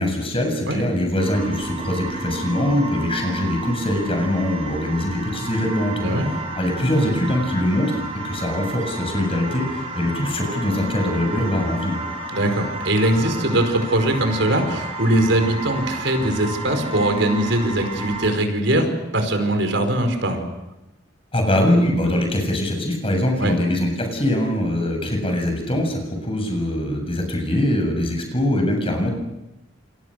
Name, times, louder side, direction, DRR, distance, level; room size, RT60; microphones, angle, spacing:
voice 1, 0.0-12.0 21.3-29.1, left 1 dB, 30° left, 3 dB, 7.2 m, -22 dB
sound 1, 1.2-18.3, right 1 dB, 30° right, 6.9 m, -31 dB
voice 2, 12.3-20.4 23.4-23.5, right 1 dB, 70° right, 6 dB, 5.1 m, -21 dB
29.5 x 27.5 x 6.6 m, 0.96 s
head